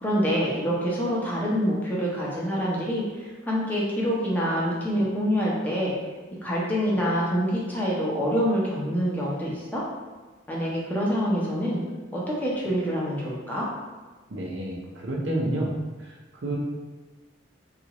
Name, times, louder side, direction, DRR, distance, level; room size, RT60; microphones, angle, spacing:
voice 1, 0.0-5.9 6.4-9.8 10.5-11.8 12.1-13.7, equal, 10° left, -5 dB, 0.7 m, -26 dB
voice 2, 14.3-15.7 16.0-16.1 16.4-16.6, right 1 dB, 80° right, -2 dB, 0.7 m, -29 dB
3.8 x 2.4 x 2.9 m, 1.3 s
head